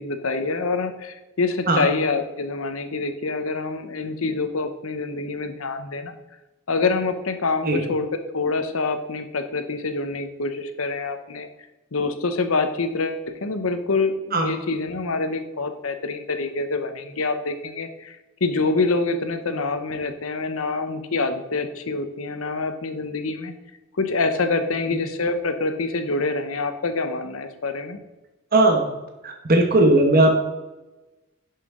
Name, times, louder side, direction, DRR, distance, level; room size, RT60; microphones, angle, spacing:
voice 1, 0.0-6.1 6.7-11.5 11.9-18.2 18.4-23.5 24.0-28.0, left 3 dB, 85° left, 8 dB, 0.9 m, -26 dB
voice 2, 28.5-28.8 29.2-30.3, right 2 dB, 45° right, 3 dB, 1.1 m, -17 dB
11.0 x 5.8 x 3.7 m, 1.1 s
head